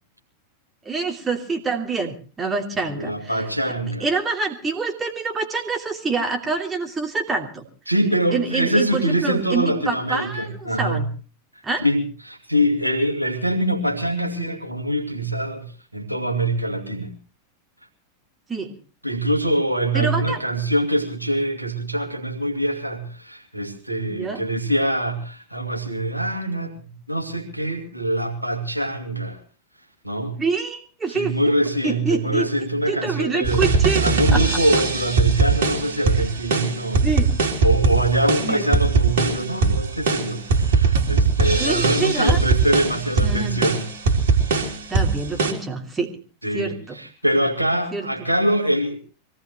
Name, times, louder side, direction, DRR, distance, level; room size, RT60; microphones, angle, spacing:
voice 1, 0.8-3.3 4.0-7.6 8.3-10.5 10.8-11.1 11.6-11.8 18.5-18.7 19.9-20.4 24.1-24.4 30.4-31.4 31.8-32.5 32.9-34.0 34.3-34.4 37.0-37.3 38.4-38.7 41.6-42.4 42.9-43.7 44.9-46.1 46.5-47.0 47.9-48.3, right 4 dB, 15° right, 2 dB, 3.0 m, -26 dB
voice 2, 2.9-4.1 7.9-11.0 11.8-15.6 15.9-17.1 19.0-29.4 30.0-30.4 31.1-33.7 34.0-37.1 37.6-43.8 44.5-44.6 46.4-49.0, right 1 dB, 90° right, 2 dB, 2.5 m, -24 dB
sound 1, 33.4-45.5, right 4 dB, 55° right, 3.4 m, -20 dB
24.5 x 17.5 x 3.2 m, 0.36 s
figure-of-eight pair, 90°, 0 cm